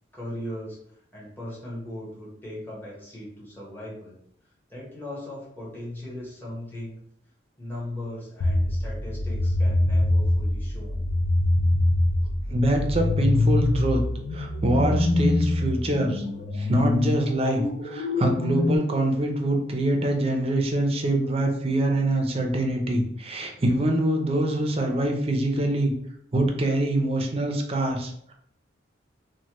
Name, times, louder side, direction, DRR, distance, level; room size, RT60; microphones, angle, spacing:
voice 1, 0.1-0.8 1.1-4.2 4.7-7.0 7.6-11.0, left 1 dB, 10° left, -6 dB, 1.0 m, -38 dB
sound 1, 8.4-18.8, left 1 dB, 80° left, 0.4 m, -24 dB
voice 2, 12.5-14.0 14.3-16.2 16.5-25.9 26.3-28.3, right 1 dB, 30° right, 3 dB, 0.5 m, -24 dB
3.1 x 2.1 x 2.9 m, 0.69 s
head